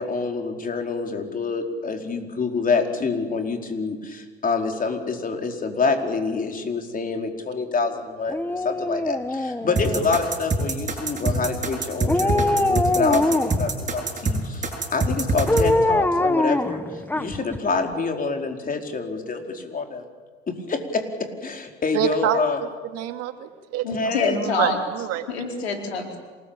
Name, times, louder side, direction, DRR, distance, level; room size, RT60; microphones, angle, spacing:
voice 1, 0.0-20.0 20.5-22.6 23.9-24.4, left 4 dB, 25° left, 3 dB, 4.6 m, -27 dB
Dog, 8.3-10.3 12.0-13.7 15.5-17.6 17.9-18.0, left 2 dB, 5° left, 1.5 m, -23 dB
sound 1, 9.8-15.7, right 2 dB, 25° right, 7.5 m, -25 dB
voice 2, 21.9-22.7 22.9-25.3, right 10 dB, 50° right, 7 dB, 2.4 m, -28 dB
voice 3, 23.8-24.8 25.3-26.2, left 5 dB, 75° left, 3 dB, 4.7 m, -26 dB
27.5 x 20.5 x 8.9 m, 1.5 s
figure-of-eight pair, 75°, 32 cm